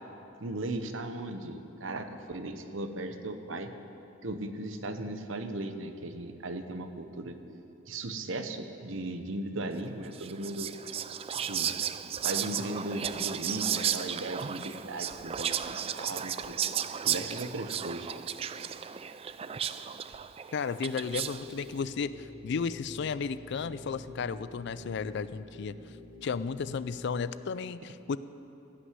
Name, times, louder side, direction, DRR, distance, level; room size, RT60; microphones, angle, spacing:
voice 1, 0.4-3.7 4.2-7.4 7.9-10.7 11.3-11.7 12.2-16.6 17.0-18.1, right 2 dB, 75° right, 8 dB, 0.9 m, -37 dB
Whispering, 10.1-21.6, right 9 dB, 30° right, 0.3 m, -34 dB
voice 2, 20.5-25.8 26.2-28.2, left 5 dB, 60° left, 15 dB, 0.4 m, -33 dB
sound 1, 21.0-27.3, left 2 dB, 45° right, 1.2 m, -48 dB
16.5 x 6.1 x 9.5 m, 2.9 s
head